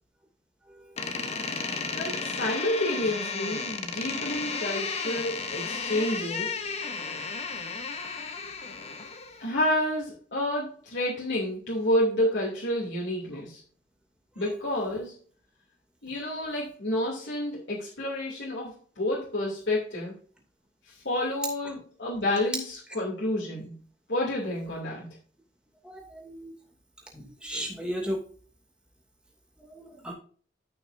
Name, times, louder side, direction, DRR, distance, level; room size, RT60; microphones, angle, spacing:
Door, 1.0-9.5, left 4 dB, 35° left, 0.9 m, -33 dB
voice 1, 1.9-6.6 9.4-13.6 14.4-15.1 16.0-20.1 21.0-23.7 24.1-25.1, left 1 dB, 80° left, -5 dB, 2.8 m, -29 dB
voice 2, 25.8-26.5 27.1-28.2 29.7-30.1, equal, 5° right, 0 dB, 2.5 m, -35 dB
14.0 x 5.8 x 2.6 m, 0.43 s
head